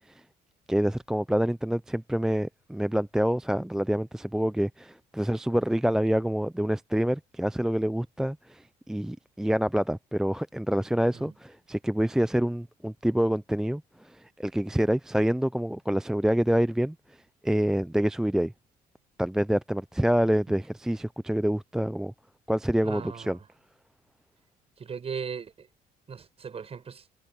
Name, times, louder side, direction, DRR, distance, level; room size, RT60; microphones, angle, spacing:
voice 1, 0.7-17.0 17.4-18.5 19.2-22.1 22.5-23.4, equal, 5° right, 0.4 m, -27 dB
voice 2, 22.8-23.4 24.8-25.7 26.1-27.1, right 6 dB, 35° right, 6.0 m, -38 dB
cardioid pair, 110°, 17 cm